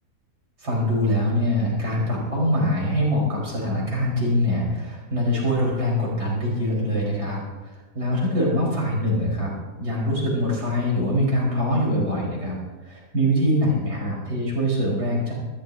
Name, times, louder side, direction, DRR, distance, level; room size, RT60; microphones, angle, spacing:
voice 1, 0.6-9.5 9.8-12.6 12.9-15.3, equal, 80° right, -4 dB, 5.1 m, -23 dB
19.0 x 15.5 x 2.8 m, 1.2 s
omnidirectional pair, 1.7 m